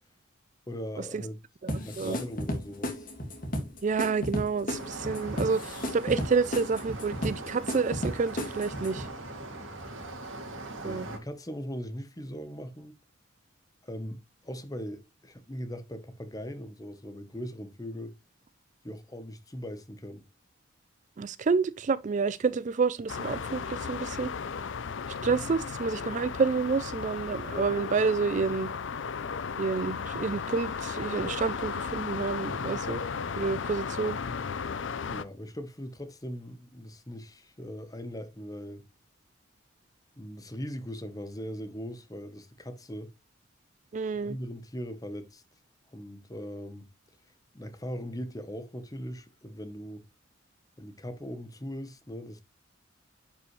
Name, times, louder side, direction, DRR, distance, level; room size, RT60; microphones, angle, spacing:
voice 1, 0.7-1.4 1.8-3.1 10.8-13.0 13.8-18.1 18.8-20.2 35.1-38.9 40.2-43.1 44.2-45.4 45.9-46.9 47.5-50.0 50.8-52.4, equal, 20° left, 1.0 m, -40 dB
voice 2, 1.6-2.2 3.8-9.1 10.8-11.1 21.2-24.3 25.2-28.7 29.6-33.0 33.4-34.2 43.9-44.4, right 4 dB, 40° right, 0.3 m, -29 dB
sound 1, 1.7-9.1, equal, 45° left, 2.0 m, -34 dB
sound 2, 4.7-11.2, right 2 dB, 85° right, 2.6 m, -41 dB
sound 3, 23.1-35.2, left 6 dB, 70° left, 0.5 m, -35 dB
10.5 x 5.4 x 3.2 m
head